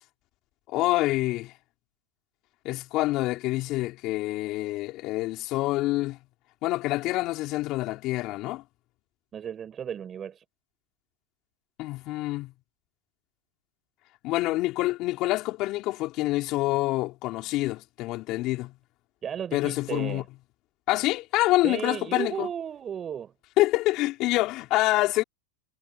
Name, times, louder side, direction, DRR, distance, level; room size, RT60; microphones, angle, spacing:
voice 1, 0.7-1.5 2.6-6.2 6.6-8.6 11.8-12.5 14.2-18.7 19.5-20.2 20.9-22.5 23.6-25.2, left 18 dB, 50° left, 4.4 m, -26 dB
voice 2, 9.3-10.4 19.2-20.3 21.6-23.3, right 8 dB, 30° right, 6.7 m, -34 dB
hypercardioid pair, 115°, 0 cm